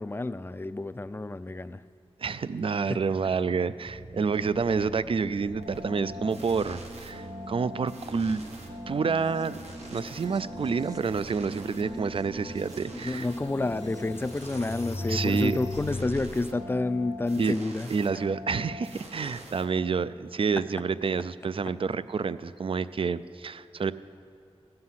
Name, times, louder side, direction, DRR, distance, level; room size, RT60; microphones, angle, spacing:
voice 1, 0.0-1.8 2.9-3.0 12.9-17.9, left 2 dB, 20° left, 14 dB, 0.4 m, -30 dB
voice 2, 2.2-8.4 8.9-9.6 9.9-13.3 15.1-15.6 17.4-17.6 17.9-23.9, right 5 dB, 55° right, 15 dB, 0.4 m, -28 dB
sound 1, 3.8-15.9, right 1 dB, 30° right, 0.9 m, -45 dB
sound 2, 5.5-20.2, left 1 dB, 85° right, 1.4 m, -43 dB
sound 3, 12.7-12.8 13.4-16.5, left 2 dB, 80° left, 0.9 m, -36 dB
17.0 x 7.7 x 5.7 m, 2.4 s
wide cardioid pair, 80°, 11 cm